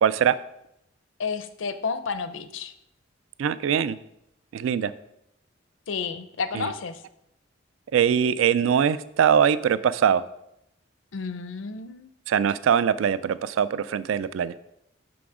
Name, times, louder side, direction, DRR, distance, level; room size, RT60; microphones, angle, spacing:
voice 1, 0.0-0.4 3.4-4.0 4.5-4.9 6.5-6.7 7.9-10.2 12.3-14.5, right 8 dB, 80° right, 16 dB, 0.3 m, -22 dB
voice 2, 1.2-2.7 5.9-7.0 11.1-12.1, left 5 dB, 70° left, 11 dB, 0.6 m, -31 dB
6.1 x 6.0 x 4.8 m, 0.81 s
head